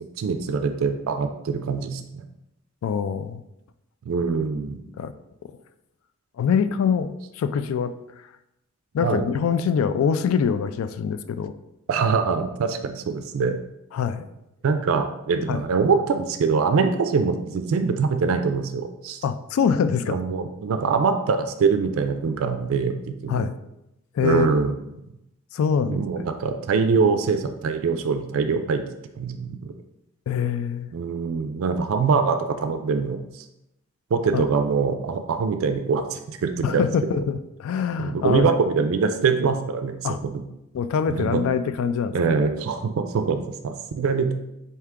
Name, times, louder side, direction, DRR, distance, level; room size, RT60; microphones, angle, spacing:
voice 1, 0.2-2.2 4.1-4.8 9.0-9.3 11.9-13.6 14.6-19.2 20.1-23.5 24.2-24.7 25.8-28.8 29.2-29.7 30.9-33.4 34.1-36.8 38.0-39.9 40.2-40.4 41.2-41.4 42.1-44.4, right 5 dB, 85° right, 8 dB, 0.4 m, -23 dB
voice 2, 2.8-3.4 5.0-5.1 6.4-7.9 8.9-11.5 13.9-14.3 15.5-15.6 19.2-20.2 23.3-23.6 24.1-24.5 25.5-26.3 30.3-30.9 34.3-34.4 36.6-38.6 40.0-40.2 40.7-42.2, left 7 dB, 90° left, 12 dB, 0.3 m, -24 dB
4.6 x 2.8 x 3.5 m, 0.88 s
head